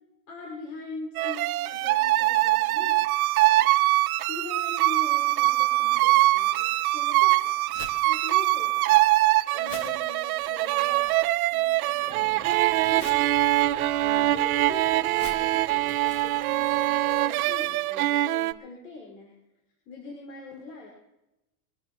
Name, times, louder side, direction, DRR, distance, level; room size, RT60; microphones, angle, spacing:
voice 1, 0.3-3.0 4.3-7.6 8.0-9.0 9.5-11.2 11.5-13.5 13.8-19.3 19.9-20.9, left 3 dB, 85° left, -1 dB, 5.6 m, -42 dB
sound 1, 1.2-18.5, right 17 dB, 65° right, 0.7 m, -23 dB
Crumpling crinkling, 5.7-17.9, left 4 dB, 30° left, 1.7 m, -49 dB
Explosion, 11.9-17.5, right 5 dB, 20° right, 1.5 m, -52 dB
24.5 x 14.0 x 3.1 m, 0.92 s
supercardioid pair, 165°, 47 cm